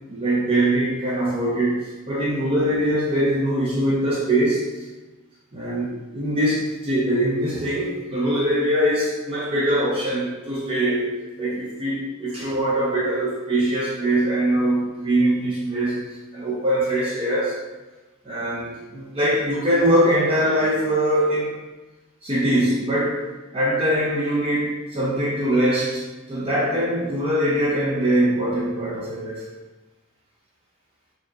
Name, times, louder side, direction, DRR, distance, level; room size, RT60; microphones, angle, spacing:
voice 1, 0.1-4.9 5.5-17.6 18.2-21.6 22.2-23.3 23.5-26.0 26.3-29.4, right 1 dB, 25° right, -6 dB, 0.5 m, -22 dB
4.6 x 2.9 x 2.4 m, 1.2 s
head